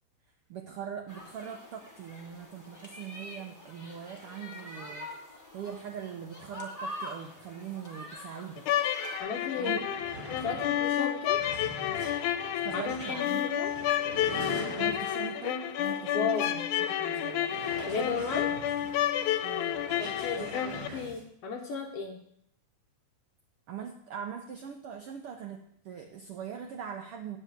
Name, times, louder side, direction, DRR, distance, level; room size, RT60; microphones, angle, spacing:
voice 1, 0.5-5.1 5.5-8.7 9.6-9.9 12.6-13.4 14.7-16.6 16.9-17.5 19.4-19.8 20.5-20.6 23.7-27.4, right 8 dB, 85° right, 4 dB, 1.2 m, -41 dB
sound 1, 1.1-9.2, equal, 20° left, 0.5 m, -44 dB
sound 2, 8.6-20.9, left 11 dB, 85° left, 2.1 m, -30 dB
voice 2, 9.2-9.8 10.4-11.4 12.7-13.7 16.1-16.6 17.9-18.5 20.0-22.2, left 5 dB, 70° left, 2 dB, 1.5 m, -34 dB
sound 3, 9.2-9.3 9.6-15.3 15.8-16.0 16.4-16.5 17.4-21.2, right 2 dB, 40° right, 1.1 m, -43 dB
10.0 x 4.8 x 7.9 m, 0.71 s
omnidirectional pair, 3.6 m